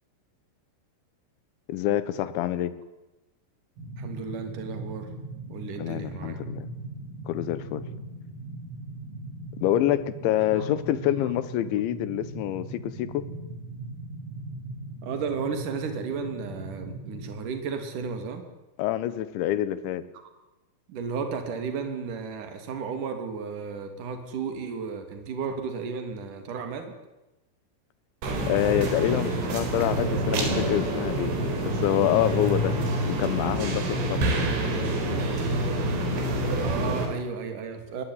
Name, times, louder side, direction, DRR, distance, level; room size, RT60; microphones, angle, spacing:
voice 1, 1.7-2.7 5.8-6.7 7.3-7.8 9.6-13.2 18.8-20.0 28.5-31.4 31.6-32.8 33.1-34.4, left 12 dB, 75° left, 15 dB, 3.2 m, -26 dB
sound 1, 3.8-17.3, right 2 dB, 85° right, 10.0 m, -39 dB
voice 2, 4.0-5.1 5.5-6.4 10.6-10.7 15.0-18.4 20.9-27.0 29.9-30.0 36.6-38.0, right 5 dB, 45° right, 6 dB, 3.8 m, -33 dB
sound 2, 28.2-37.1, right 1 dB, 65° right, 6.4 m, -27 dB
22.5 x 20.0 x 9.9 m, 1.0 s
omnidirectional pair, 5.9 m